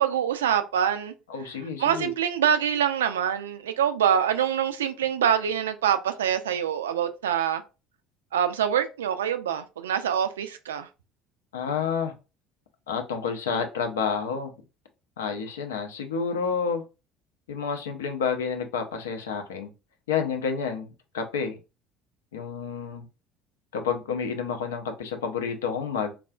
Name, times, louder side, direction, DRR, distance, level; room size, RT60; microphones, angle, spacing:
voice 1, 0.0-1.1 1.8-7.6 8.3-10.9, right 9 dB, 70° right, 0.3 m, -25 dB
voice 2, 1.3-2.1 11.5-12.1 12.9-14.5 15.2-16.8 17.5-19.7 20.1-21.6 22.3-23.1 23.7-26.1, left 6 dB, 70° left, 0.5 m, -29 dB
3.4 x 2.4 x 2.3 m
figure-of-eight pair, 60°, 0 cm